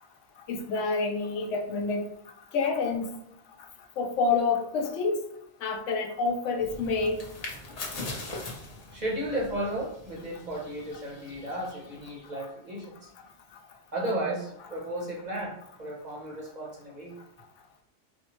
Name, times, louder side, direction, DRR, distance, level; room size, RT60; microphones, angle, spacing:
voice 1, 0.5-2.1 2.5-3.1 4.0-5.2 5.6-7.2 12.4-12.5, left 4 dB, 80° left, 2 dB, 0.9 m, -28 dB
sound 1, 6.6-12.3, left 2 dB, 40° left, 0.6 m, -41 dB
voice 2, 8.9-13.1 13.9-17.2, right 1 dB, 45° right, -3 dB, 0.7 m, -34 dB
4.2 x 2.1 x 2.9 m, 0.77 s
omnidirectional pair, 1.2 m